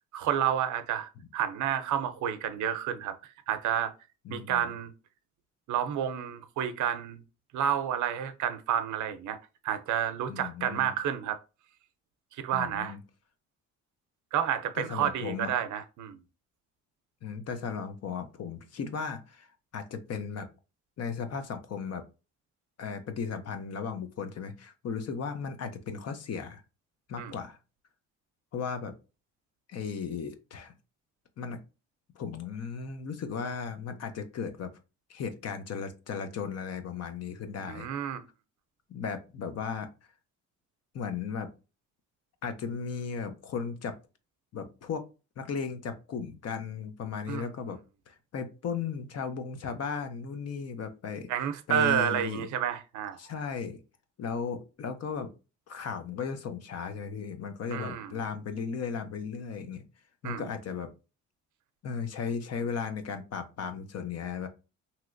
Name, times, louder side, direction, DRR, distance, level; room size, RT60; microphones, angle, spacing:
voice 1, 0.1-3.1 3.5-3.9 4.3-4.9 5.7-7.2 7.5-9.4 9.6-11.4 12.4-12.9 14.3-16.2 27.2-27.3 37.7-38.2 47.3-47.5 51.3-53.2 57.7-58.1 60.2-60.4, right 9 dB, 75° right, 0.5 m, -30 dB
voice 2, 4.2-4.7 10.3-10.9 12.5-13.0 14.7-15.5 17.2-19.5 19.7-20.5 21.0-22.0 22.8-26.6 27.1-27.6 28.5-28.9 29.7-30.7 31.4-31.6 32.1-34.7 35.1-37.9 38.9-39.9 40.9-41.5 42.4-43.9 44.5-45.1 45.4-47.8 48.1-51.3 51.7-52.5 53.2-53.8 54.2-55.3 55.7-59.8 60.2-60.9 61.8-64.5, left 6 dB, 55° left, 0.7 m, -36 dB
3.0 x 2.8 x 2.5 m
cardioid pair, 90°, 30 cm